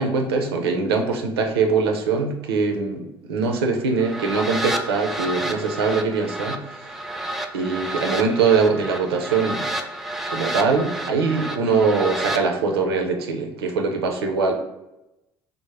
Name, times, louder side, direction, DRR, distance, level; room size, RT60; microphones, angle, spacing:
voice 1, 0.0-6.6 7.5-9.7 10.3-14.5, right 4 dB, 80° right, 3 dB, 0.5 m, -22 dB
sound 1, 3.9-12.4, right 1 dB, ahead, 0.4 m, -30 dB
3.5 x 2.0 x 3.1 m, 0.94 s
figure-of-eight pair, 55°, 13 cm